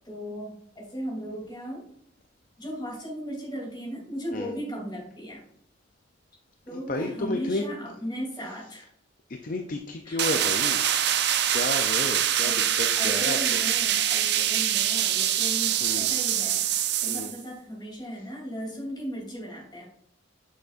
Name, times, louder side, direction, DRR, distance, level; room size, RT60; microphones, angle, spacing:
voice 1, 0.0-1.8 2.6-5.4 6.7-8.9 10.0-10.2 12.4-12.7 12.9-16.7 17.0-19.8, equal, 20° left, -3 dB, 2.9 m, -36 dB
voice 2, 6.7-7.6 9.4-10.8 11.5-13.6 15.8-16.1 17.1-17.3, left 2 dB, 45° left, 5 dB, 0.5 m, -32 dB
sound 1, 10.2-17.4, right 10 dB, 55° right, 0.5 m, -24 dB
7.7 x 6.4 x 2.5 m, 0.72 s
head